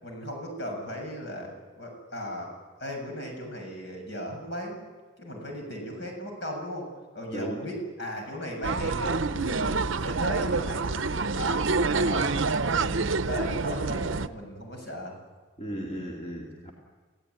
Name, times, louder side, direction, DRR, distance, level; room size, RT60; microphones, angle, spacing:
voice 1, 0.0-2.5 2.8-4.8 5.2-6.9 7.1-10.9 11.3-11.7 12.0-15.1 15.9-16.1, equal, 55° left, 2 dB, 7.3 m, -37 dB
sound 1, 8.6-14.3, right 4 dB, 70° right, 0.8 m, -27 dB
voice 2, 15.6-16.7, equal, 30° left, -2 dB, 2.8 m, -35 dB
27.5 x 16.5 x 9.6 m, 1.4 s
head